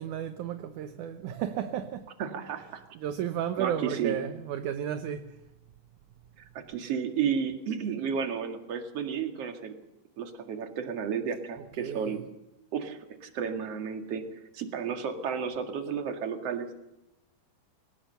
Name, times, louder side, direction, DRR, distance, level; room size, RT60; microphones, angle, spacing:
voice 1, 0.0-2.1 3.0-5.4 11.8-12.2, right 10 dB, 70° right, 2.2 m, -33 dB
voice 2, 2.2-2.8 3.6-4.1 6.5-9.7 10.2-12.2 12.7-14.2 14.5-16.7, right 7 dB, 45° right, 2.7 m, -32 dB
22.5 x 19.0 x 6.8 m
omnidirectional pair, 4.2 m